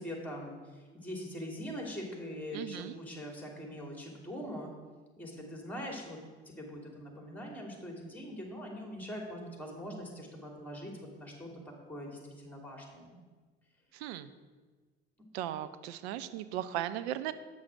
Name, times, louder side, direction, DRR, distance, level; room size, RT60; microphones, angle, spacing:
voice 1, 0.0-4.7 5.2-6.2 6.4-10.9 11.2-13.2, equal, 5° left, 0 dB, 2.9 m, -42 dB
voice 2, 2.5-3.0 13.9-14.3 15.3-17.3, right 12 dB, 75° right, 13 dB, 0.6 m, -37 dB
8.8 x 6.4 x 6.0 m, 1.4 s
hypercardioid pair, 65°, 32 cm